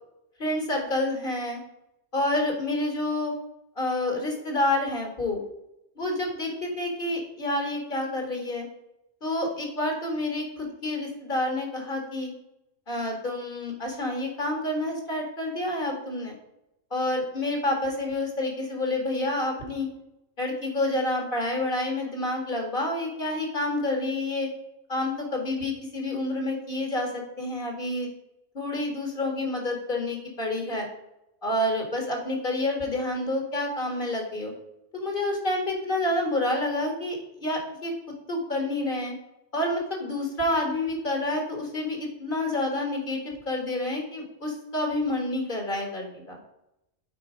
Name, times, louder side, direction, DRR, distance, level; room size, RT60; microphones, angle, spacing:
voice 1, 0.4-1.6 2.1-3.3 3.8-5.4 6.0-8.7 9.2-12.3 12.9-16.4 16.9-19.9 20.4-24.5 24.9-28.1 28.5-30.9 31.4-34.5 34.9-37.9 38.3-39.1 39.5-46.4, left 1 dB, 45° left, 2 dB, 1.8 m, -28 dB
8.6 x 4.4 x 5.0 m, 0.86 s
omnidirectional pair, 1.3 m